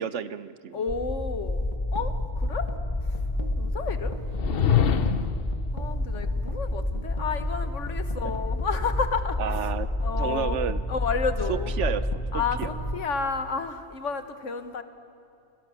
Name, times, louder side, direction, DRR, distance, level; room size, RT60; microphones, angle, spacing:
voice 1, 0.0-0.8 8.2-8.3 9.4-9.9 10.1-10.8 11.5-12.7, right 8 dB, 75° right, 14 dB, 1.1 m, -31 dB
voice 2, 0.7-1.6 1.9-2.7 3.1-3.2 3.6-4.2 4.6-5.1 5.7-9.6 10.0-10.6 10.9-11.7 12.3-14.8, left 5 dB, 85° left, 9 dB, 1.7 m, -31 dB
sound 1, 0.9-13.0, left 2 dB, 15° left, 0.8 m, -30 dB
sound 2, 1.5-13.9, right 3 dB, 40° left, 1.9 m, -42 dB
sound 3, 4.3-5.5, left 8 dB, 55° left, 1.0 m, -23 dB
29.5 x 23.0 x 7.2 m, 2.7 s
omnidirectional pair, 1.2 m